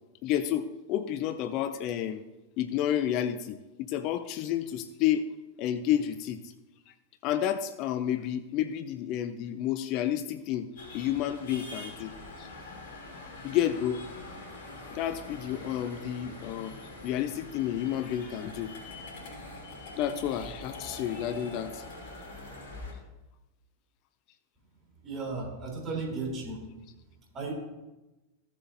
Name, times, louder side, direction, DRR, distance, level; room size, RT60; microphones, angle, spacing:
voice 1, 0.2-2.3 2.6-5.2 5.6-6.5 7.2-10.7 10.9-12.1 12.4-12.5 13.4-14.0 14.9-16.7 17.0-18.7 20.0-21.8, left 11 dB, 40° left, 12 dB, 0.5 m, -30 dB
sound 1, 10.8-22.9, left 2 dB, 55° left, 3.1 m, -44 dB
voice 2, 25.0-26.6 27.3-27.5, right 3 dB, 30° right, -1 dB, 3.7 m, -34 dB
15.5 x 7.3 x 2.7 m, 1.1 s
figure-of-eight pair, 90°, 0 cm